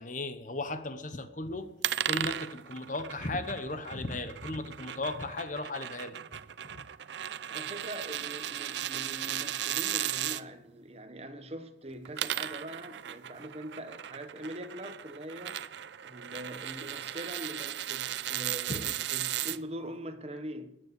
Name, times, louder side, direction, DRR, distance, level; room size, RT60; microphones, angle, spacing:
voice 1, 0.0-1.7 2.0-6.2 6.7-6.8 18.7-18.8, left 2 dB, 45° left, 0.9 m, -36 dB
sound 1, 1.8-10.4 11.9-19.6, right 12 dB, 70° right, 0.5 m, -36 dB
voice 2, 7.5-15.6 16.0-20.8, right 1 dB, 35° right, 1.1 m, -42 dB
13.5 x 9.1 x 8.4 m
head